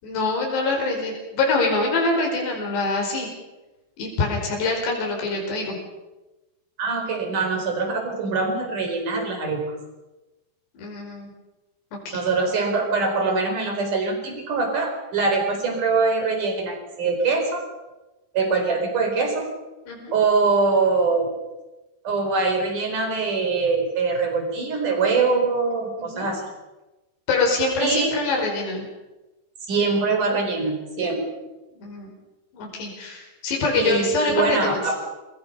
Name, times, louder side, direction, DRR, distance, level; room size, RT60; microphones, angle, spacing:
voice 1, 0.0-3.3 4.0-5.8 10.8-11.3 11.9-12.2 19.9-20.1 26.0-26.3 27.3-28.9 31.8-32.1 32.5-34.8, left 3 dB, 80° left, 0 dB, 7.1 m, -25 dB
voice 2, 6.8-9.6 12.1-17.6 18.3-19.5 20.1-21.3 22.0-26.4 27.8-28.1 29.7-31.3 33.8-35.0, right 4 dB, 50° right, 4 dB, 6.0 m, -23 dB
28.0 x 22.5 x 5.7 m, 1.1 s
omnidirectional pair, 4.8 m